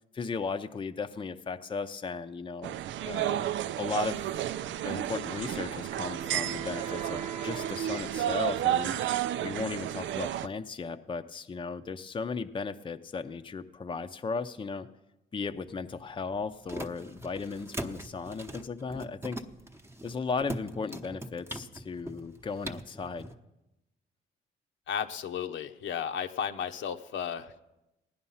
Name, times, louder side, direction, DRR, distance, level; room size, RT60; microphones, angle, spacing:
voice 1, 0.0-2.8 3.0-4.2 4.8-9.0 9.4-14.9 15.3-19.4 20.0-23.3, left 4 dB, 25° left, 8 dB, 0.7 m, -36 dB
sound 1, 2.6-10.5, right 12 dB, 75° right, 0.5 m, -32 dB
Wind instrument woodwind instrument, 5.2-8.8, right 6 dB, 35° right, 0.7 m, -42 dB
sound 2, 15.5-23.4, right 1 dB, 10° right, 1.0 m, -42 dB
voice 2, 24.9-27.6, left 8 dB, 75° left, 7 dB, 1.0 m, -34 dB
16.5 x 10.5 x 5.6 m, 0.95 s
cardioid pair, 90°, 20 cm